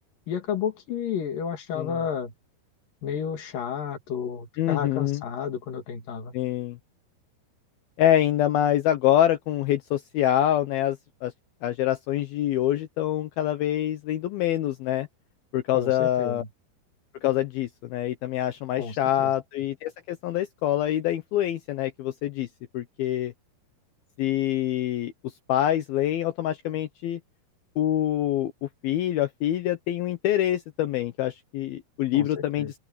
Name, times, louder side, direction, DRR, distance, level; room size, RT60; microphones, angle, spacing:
voice 1, 0.3-2.3 3.0-6.3 15.7-16.5 18.8-19.3 32.1-32.3 32.6-32.7, left 7 dB, 55° left, 3.4 m, -31 dB
voice 2, 4.6-5.2 6.3-6.8 8.0-11.3 11.6-15.1 15.5-16.4 17.2-22.5 22.7-23.3 24.2-25.1 25.5-27.2 27.8-32.8, left 12 dB, 75° left, 2.5 m, -25 dB
open air
omnidirectional pair, 5.0 m